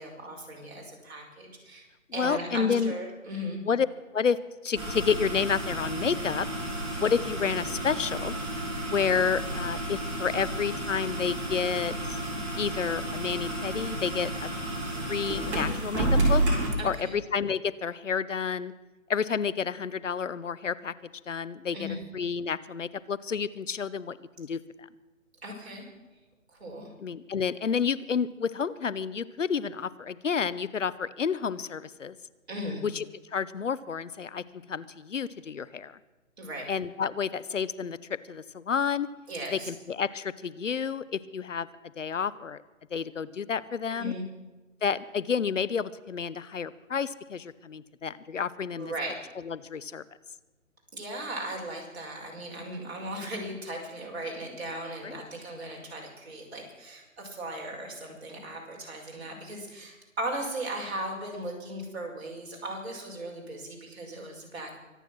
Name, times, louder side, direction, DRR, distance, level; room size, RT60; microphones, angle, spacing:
voice 1, 0.0-1.8 2.1-3.6 16.8-17.2 21.7-22.0 25.4-25.9 26.5-26.9 32.5-32.8 36.4-36.7 39.3-39.7 43.9-44.2 48.8-49.1 50.9-64.8, right 1 dB, 50° right, -1 dB, 5.5 m, -37 dB
voice 2, 2.1-2.9 3.6-3.9 4.1-4.4 4.6-6.5 7.0-8.4 8.9-12.2 12.6-14.5 15.1-16.4 16.8-18.7 19.1-20.9 21.3-24.9 27.0-32.1 32.8-36.0 36.7-39.1 39.5-41.7 42.0-42.6 42.9-44.1 44.8-48.9 49.4-50.0 55.0-55.2, left 6 dB, 65° left, 17 dB, 0.9 m, -30 dB
sound 1, 4.7-16.7, right 1 dB, 20° right, 4.0 m, -31 dB
24.0 x 9.3 x 6.2 m, 1.1 s
figure-of-eight pair, 150°, 41 cm